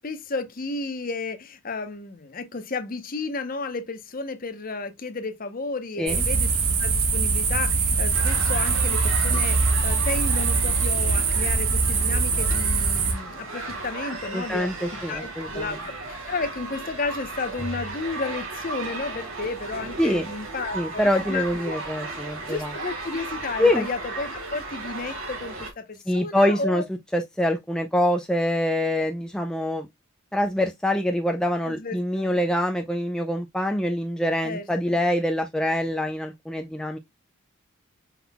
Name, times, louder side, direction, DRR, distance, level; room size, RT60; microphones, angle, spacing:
voice 1, 0.0-6.5 6.8-14.7 15.1-21.0 21.3-21.7 22.5-26.8 31.6-32.4 34.4-35.0, left 3 dB, 40° left, 0.8 m, -32 dB
sound 1, 6.1-13.1, right 4 dB, 90° right, 1.5 m, -22 dB
sound 2, 8.1-25.7, right 2 dB, 70° right, 2.1 m, -35 dB
voice 2, 14.3-15.8 20.0-20.3 20.7-22.7 23.6-23.9 26.1-26.8 27.1-29.9 30.3-37.0, left 1 dB, 5° left, 0.4 m, -25 dB
5.7 x 3.9 x 2.2 m
head